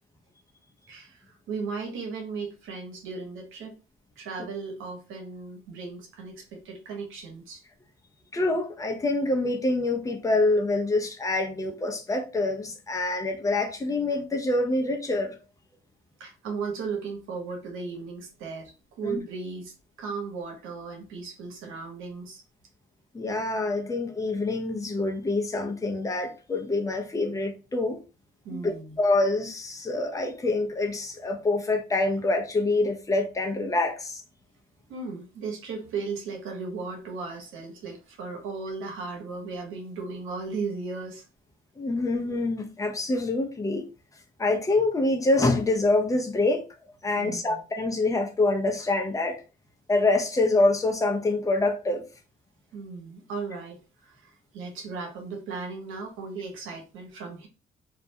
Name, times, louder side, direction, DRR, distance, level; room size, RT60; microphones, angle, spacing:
voice 1, 0.9-3.7 4.2-7.6 16.2-22.4 28.4-29.0 34.9-41.3 47.1-47.6 52.7-57.5, right 4 dB, 85° right, 1.0 m, -36 dB
voice 2, 8.3-15.4 19.0-19.2 23.1-28.0 28.5-34.2 41.8-43.8 44.4-46.6 47.0-49.4 49.9-52.0, left 2 dB, 15° left, 0.6 m, -26 dB
2.5 x 2.1 x 2.7 m
cardioid pair, 90°, 20 cm